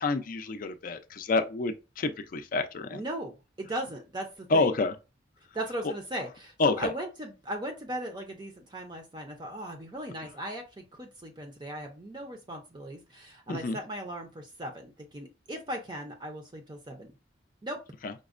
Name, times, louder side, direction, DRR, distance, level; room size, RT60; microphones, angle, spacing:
voice 1, 0.0-3.0 4.5-4.9 6.6-6.9 13.5-13.8 18.0-18.1, left 3 dB, 50° left, 0.4 m, -28 dB
voice 2, 2.9-3.3 3.6-4.7 5.5-17.1 17.6-17.8, right 1 dB, 25° right, 0.5 m, -38 dB
5.1 x 2.1 x 2.4 m
head